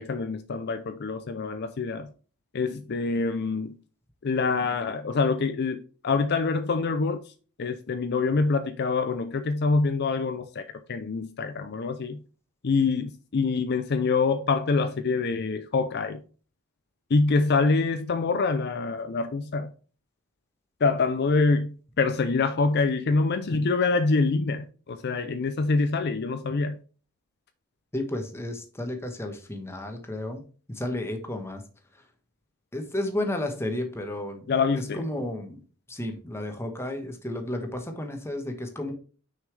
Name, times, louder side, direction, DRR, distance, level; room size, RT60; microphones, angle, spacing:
voice 1, 0.0-2.1 2.5-3.8 4.2-7.3 7.6-10.6 10.9-12.2 12.6-16.2 17.1-19.7 20.8-26.8 34.5-35.1, left 4 dB, 50° left, 0.5 m, -25 dB
voice 2, 27.9-30.4 30.7-31.6 32.7-35.6 35.9-38.9, left 1 dB, 10° left, 1.1 m, -32 dB
6.2 x 5.6 x 3.3 m
head